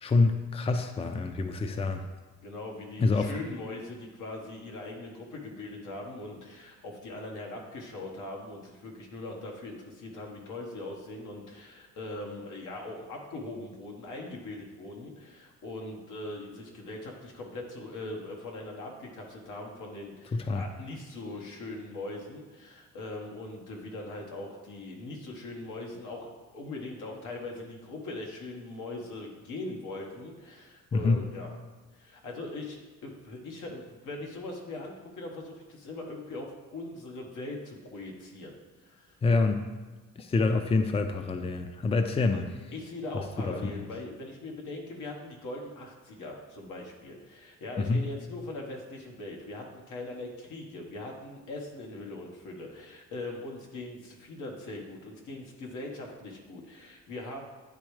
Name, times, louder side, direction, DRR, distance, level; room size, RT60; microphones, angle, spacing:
voice 1, 0.0-2.0 3.0-3.3 20.3-20.6 30.9-31.2 39.2-39.6 40.2-42.5 43.1-43.9 47.8-48.1, left 3 dB, 20° left, 7 dB, 0.4 m, -27 dB
voice 2, 2.4-31.5 31.9-32.8 33.0-39.2 42.7-57.4, left 2 dB, 80° left, 0 dB, 1.3 m, -41 dB
9.9 x 3.4 x 3.2 m, 1.3 s
cardioid pair, 90°, 30 cm